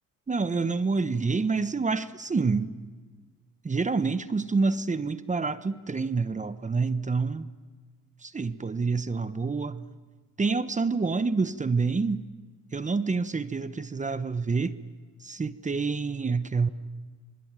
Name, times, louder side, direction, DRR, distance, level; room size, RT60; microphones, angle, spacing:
voice 1, 0.3-2.7 3.6-7.5 8.2-9.9 10.4-12.2 12.7-14.8 15.2-16.7, right 4 dB, 25° right, 13 dB, 1.1 m, -27 dB
26.5 x 25.0 x 9.1 m, 1.5 s
cardioid pair, 90°, 30 cm